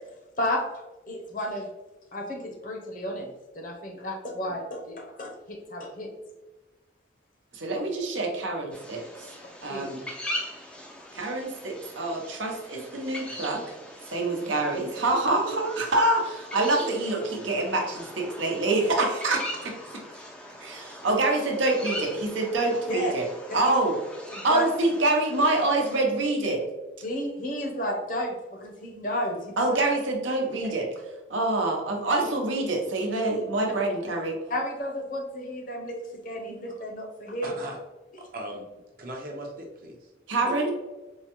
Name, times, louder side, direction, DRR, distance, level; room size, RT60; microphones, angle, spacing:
voice 1, 1.1-1.7 2.1-6.1 9.7-9.8 22.9-23.1 23.5-23.7 24.3-24.6 27.0-29.8 33.6-33.7 34.5-36.0 36.2-37.5 40.4-40.5, equal, 45° left, 1 dB, 0.7 m, -32 dB
voice 2, 7.5-9.3 9.6-10.0 11.1-13.6 14.1-19.7 20.6-23.2 23.5-23.9 24.4-26.6 29.6-30.9 31.3-34.4 40.3-40.7, right 2 dB, 90° right, 1 dB, 0.8 m, -26 dB
sound 1, 8.7-26.0, left 1 dB, 5° left, 0.3 m, -41 dB
voice 3, 37.4-37.8 38.2-38.6 39.0-40.1, right 1 dB, 50° right, 0 dB, 0.6 m, -38 dB
4.6 x 2.1 x 2.9 m, 1.1 s
head